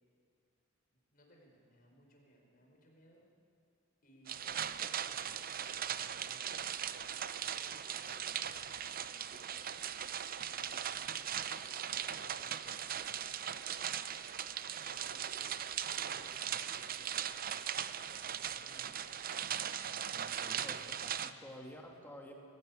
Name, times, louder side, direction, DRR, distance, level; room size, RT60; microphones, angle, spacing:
voice 1, 0.9-3.3 4.0-9.5 10.1-19.5 20.2-20.8 21.3-22.1, equal, 45° left, -1 dB, 4.9 m, -64 dB
sound 1, 4.3-21.3, right 9 dB, 45° right, 0.6 m, -39 dB
voice 2, 20.1-22.3, equal, 10° left, 1 dB, 2.5 m, -51 dB
22.5 x 16.0 x 9.3 m, 2.3 s
head